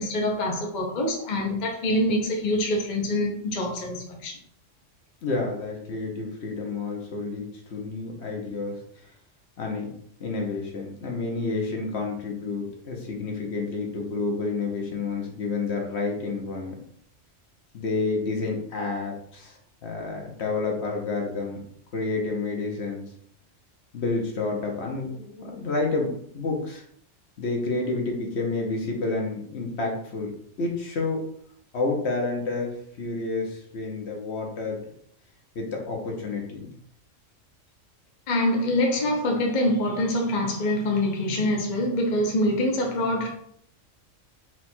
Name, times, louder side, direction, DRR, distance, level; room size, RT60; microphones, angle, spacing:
voice 1, 0.0-4.4 38.3-43.3, left 1 dB, 40° left, 0 dB, 0.7 m, -25 dB
voice 2, 5.2-8.8 9.6-9.9 10.2-16.8 17.7-21.6 21.9-23.0 23.9-26.8 27.4-31.3 31.7-34.8 35.5-36.7, left 3 dB, 60° left, 0 dB, 1.2 m, -29 dB
4.5 x 2.4 x 4.3 m, 0.65 s
omnidirectional pair, 1.4 m